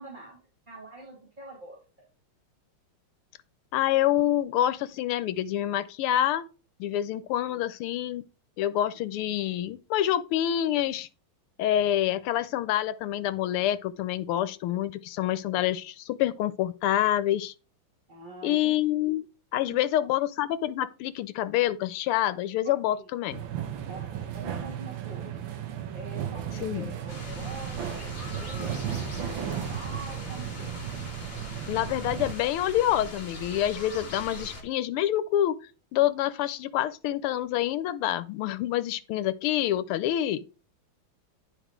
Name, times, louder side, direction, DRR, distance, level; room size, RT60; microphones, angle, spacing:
voice 1, 0.0-2.1 6.8-7.6 18.1-18.8 19.6-19.8 22.6-23.1 23.9-25.4 25.9-28.9 29.2-30.8, right 2 dB, 20° right, 2.5 m, -45 dB
voice 2, 3.7-6.5 6.8-8.2 8.6-11.1 11.6-17.5 18.4-19.3 19.5-23.4 26.6-26.9 31.7-35.5 35.9-40.4, left 12 dB, 85° left, 1.6 m, -27 dB
sound 1, 23.3-32.3, right 9 dB, 70° right, 1.6 m, -35 dB
sound 2, 27.1-34.6, left 1 dB, 30° left, 2.1 m, -41 dB
10.0 x 4.8 x 3.6 m
omnidirectional pair, 2.4 m